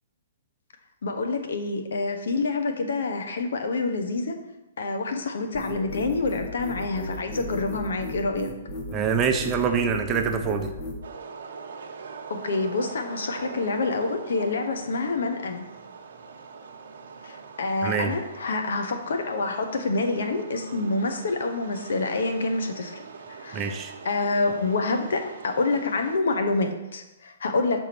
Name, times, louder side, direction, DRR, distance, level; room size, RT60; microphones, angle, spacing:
voice 1, 1.0-4.4 4.8-8.5 12.3-15.7 17.2-23.0 23.3-23.7 24.0-27.8, left 3 dB, 75° left, 6 dB, 0.9 m, -27 dB
sound 1, 5.5-11.0, left 1 dB, 30° left, 0.9 m, -35 dB
voice 2, 8.9-10.7 17.8-18.2 23.5-23.9, right 6 dB, 25° right, 5 dB, 0.6 m, -25 dB
sound 2, 11.0-26.2, right 5 dB, 70° right, 0.9 m, -42 dB
6.3 x 3.5 x 6.0 m, 1.0 s
hypercardioid pair, 150°, 0 cm